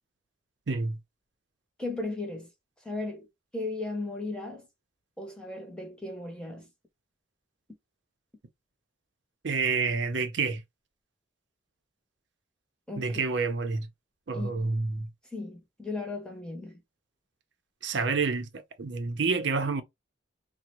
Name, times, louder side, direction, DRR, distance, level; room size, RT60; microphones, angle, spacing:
voice 1, 0.7-1.0 9.4-10.6 13.0-13.9 14.3-15.1 17.8-19.8, right 4 dB, 75° right, 0.6 m, -28 dB
voice 2, 1.8-2.5 2.8-3.3 3.5-4.7 5.2-6.7 12.9-13.2 14.3-14.7 15.3-16.8, left 2 dB, 5° left, 0.6 m, -36 dB
3.5 x 2.1 x 2.9 m
head